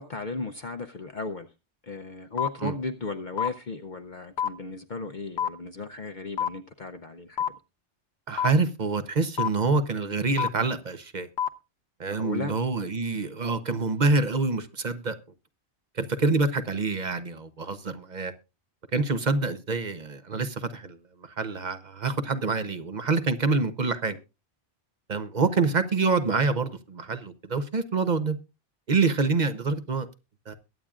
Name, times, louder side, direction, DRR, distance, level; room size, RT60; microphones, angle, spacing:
voice 1, 0.0-1.5 1.8-7.5 12.1-12.6 25.6-25.8, left 3 dB, 50° left, 0.8 m, -35 dB
sound 1, 2.4-2.5 3.4-3.5 4.4-4.5 5.4-5.5 6.4-6.5 7.4-7.5 8.4-8.5 9.4-9.5 10.4-10.5 11.4-11.5, left 9 dB, 75° left, 1.1 m, -25 dB
voice 2, 8.3-11.3 12.0-15.2 16.0-18.3 18.9-24.2 25.1-28.4 28.9-30.1 30.5-30.6, right 4 dB, 45° right, 0.9 m, -26 dB
22.0 x 8.6 x 2.4 m
omnidirectional pair, 1.2 m